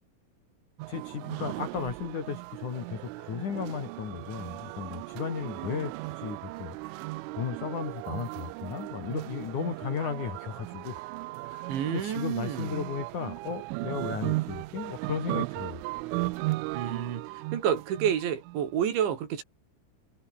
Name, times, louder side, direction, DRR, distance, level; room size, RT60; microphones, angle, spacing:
sound 1, 0.8-18.6, right 21 dB, 80° right, 3.1 m, -36 dB
voice 1, 0.9-6.8 7.4-11.0 11.4-15.8, left 7 dB, 45° left, 3.1 m, -35 dB
voice 2, 11.7-12.8 16.7-19.4, right 9 dB, 65° right, 5.0 m, -29 dB
omnidirectional pair, 5.9 m